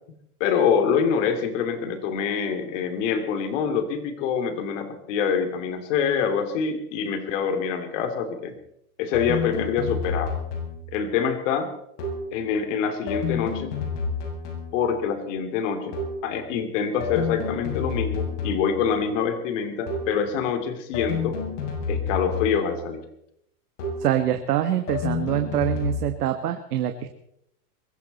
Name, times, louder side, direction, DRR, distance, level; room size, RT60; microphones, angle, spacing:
voice 1, 0.4-8.6 9.0-10.4 10.9-11.7 12.3-13.7 14.7-16.0 16.2-21.4 21.9-23.0, left 6 dB, 50° left, 8 dB, 2.8 m, -25 dB
sound 1, 9.1-11.0 12.0-12.4 13.1-15.0 15.9-16.3 17.0-18.9 19.9-20.3 20.9-22.9 23.8-24.2 24.9-26.0, left 5 dB, 65° left, 7.2 m, -30 dB
voice 2, 24.0-27.2, right 11 dB, 75° right, 7 dB, 1.5 m, -25 dB
22.5 x 15.0 x 4.2 m, 0.75 s
supercardioid pair, 150°, 47 cm